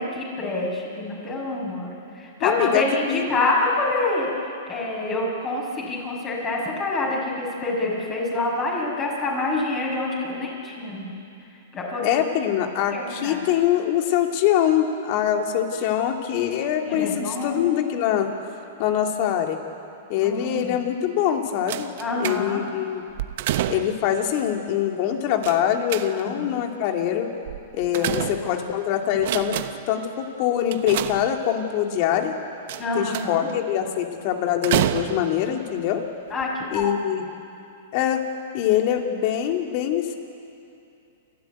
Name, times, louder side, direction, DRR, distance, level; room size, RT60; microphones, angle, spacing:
voice 1, 0.0-4.3 4.7-11.2 11.7-12.2 12.9-13.4 16.9-17.6 20.2-20.8 22.0-22.6 26.2-26.6 27.9-28.2 28.4-28.6 32.8-33.5 36.3-36.9, left 2 dB, 30° left, -3 dB, 6.2 m, -27 dB
voice 2, 2.4-2.8 3.1-3.4 12.0-18.3 18.8-19.6 20.1-21.9 22.2-23.0 23.7-27.3 27.7-29.6 29.9-32.3 32.9-36.0 36.7-37.2 37.9-38.2 38.5-40.1, left 10 dB, 50° left, 3 dB, 2.6 m, -23 dB
sound 1, 21.7-22.7 23.2-24.1 25.4-26.5 27.5-28.8 29.1-30.0 30.7-31.7 32.7-33.5 34.6-35.5 36.3-36.4 36.8-36.9, right 13 dB, 60° right, 1.0 m, -28 dB
29.0 x 12.5 x 9.3 m, 2.7 s
hypercardioid pair, 120°, 0 cm